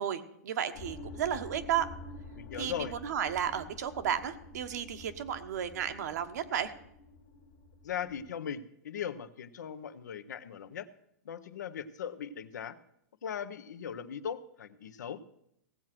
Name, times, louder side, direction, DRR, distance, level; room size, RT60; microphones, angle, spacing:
voice 1, 0.0-1.9 2.6-6.7, right 9 dB, 70° right, 8 dB, 1.3 m, -33 dB
sound 1, 0.7-8.3, left 2 dB, 50° left, 1.6 m, -48 dB
voice 2, 2.4-2.9 7.8-10.9 11.2-12.8 13.2-15.2, left 8 dB, 85° left, 11 dB, 1.0 m, -39 dB
17.0 x 7.6 x 6.0 m, 0.75 s
hypercardioid pair, 145°, 9 cm